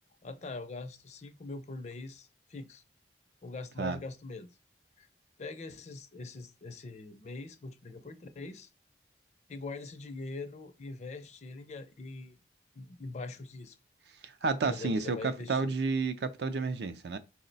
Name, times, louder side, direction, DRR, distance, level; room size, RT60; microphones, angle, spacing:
voice 1, 0.2-2.8 3.4-4.6 5.0-5.1 5.4-8.7 9.5-12.4 12.7-13.8 14.6-15.7, left 3 dB, 35° left, 0.4 m, -43 dB
voice 2, 14.2-17.2, right 4 dB, 60° right, 0.4 m, -31 dB
4.6 x 2.1 x 3.9 m
head